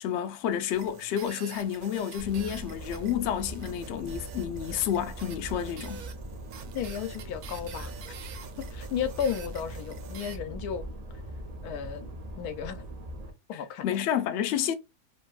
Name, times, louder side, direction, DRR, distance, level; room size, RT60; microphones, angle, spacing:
voice 1, 0.0-6.0 13.5-14.7, left 9 dB, 65° left, 0.7 m, -30 dB
sound 1, 0.7-10.4, right 7 dB, 80° right, 1.1 m, -47 dB
sound 2, 2.2-13.3, right 1 dB, 55° right, 0.4 m, -41 dB
voice 2, 6.7-7.9 8.6-10.9 11.6-12.1 12.4-12.8 13.5-13.9, left 8 dB, 90° left, 1.1 m, -33 dB
2.8 x 2.7 x 2.3 m
omnidirectional pair, 1.6 m